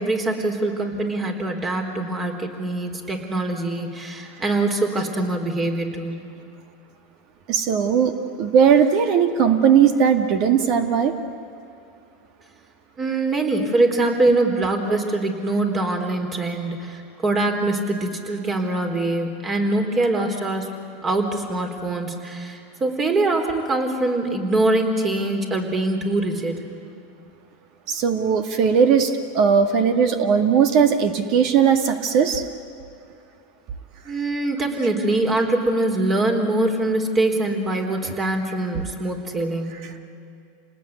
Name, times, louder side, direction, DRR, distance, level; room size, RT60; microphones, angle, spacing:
voice 1, 0.0-6.3 13.0-20.7 21.0-26.7 34.1-39.9, right 2 dB, 25° right, 4 dB, 4.0 m, -23 dB
voice 2, 7.5-11.2 27.9-32.5 38.0-38.1, right 7 dB, 50° right, 7 dB, 2.0 m, -18 dB
28.5 x 19.0 x 9.7 m, 2.6 s
supercardioid pair, 125°, 0 cm